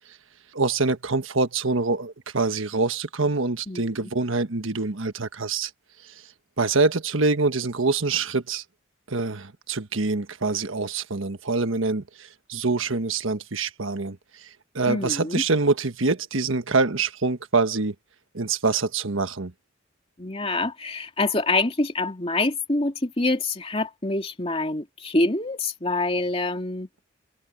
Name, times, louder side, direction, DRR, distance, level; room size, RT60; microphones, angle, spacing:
voice 1, 0.5-5.7 6.0-6.1 6.6-8.6 9.1-17.9 18.3-19.5, right 3 dB, 70° right, 1.4 m, -25 dB
voice 2, 3.7-4.1 14.9-15.4 20.2-26.9, left 2 dB, 25° left, 2.6 m, -26 dB
head